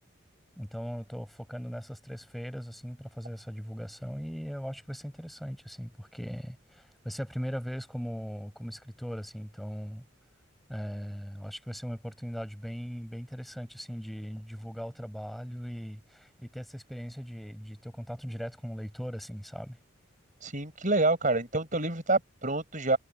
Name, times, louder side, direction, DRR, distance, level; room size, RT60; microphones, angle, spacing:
voice 1, 0.6-10.0 10.7-19.8, equal, ahead, 7.8 m, -39 dB
voice 2, 20.4-23.0, right 2 dB, 40° right, 6.2 m, -27 dB
head